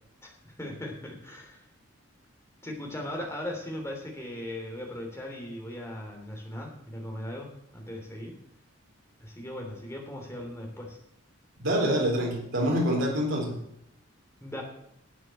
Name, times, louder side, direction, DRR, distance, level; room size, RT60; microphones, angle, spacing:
voice 1, 0.2-1.6 2.6-8.3 9.2-11.0 14.4-14.6, left 1 dB, 10° left, 1 dB, 3.1 m, -38 dB
voice 2, 11.6-13.6, equal, 65° right, -3 dB, 4.0 m, -26 dB
12.5 x 8.0 x 6.6 m, 0.79 s
head